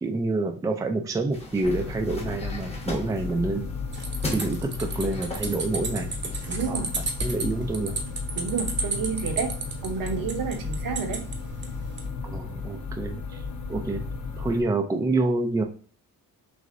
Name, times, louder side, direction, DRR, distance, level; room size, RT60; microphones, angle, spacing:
voice 1, 0.0-3.7 4.3-6.1 6.7-6.8 7.2-8.0 12.2-13.4 13.7-14.0 14.4-15.6, right 2 dB, 10° right, 5 dB, 0.3 m, -27 dB
sound 1, 1.3-6.5, left 2 dB, 20° left, 0.9 m, -38 dB
sound 2, 1.6-14.6, left 4 dB, 85° left, 1.0 m, -34 dB
sound 3, 3.9-12.1, right 3 dB, 35° right, 0.8 m, -34 dB
voice 2, 6.5-6.9 8.4-9.5 9.8-11.3, right 6 dB, 75° right, 4 dB, 0.9 m, -30 dB
6.2 x 2.6 x 2.5 m, 0.42 s
wide cardioid pair, 150°, 34 cm